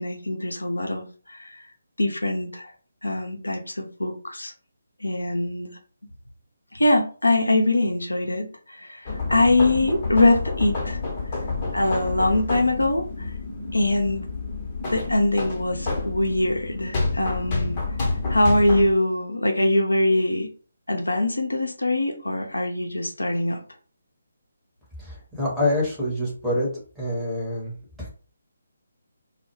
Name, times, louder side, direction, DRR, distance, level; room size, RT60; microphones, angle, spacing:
voice 1, 0.0-1.6 2.0-2.7 3.0-4.5 5.0-5.8 6.7-11.0 11.7-13.3 13.7-14.2 14.9-17.8 18.3-20.5 20.9-23.6, left 2 dB, 75° left, 4 dB, 0.5 m, -23 dB
sound 1, 9.0-18.9, left 3 dB, 25° left, 0.7 m, -29 dB
voice 2, 25.0-26.7 27.0-28.1, left 1 dB, 5° right, -7 dB, 0.9 m, -26 dB
2.1 x 2.1 x 2.9 m, 0.39 s
figure-of-eight pair, 145°, 0 cm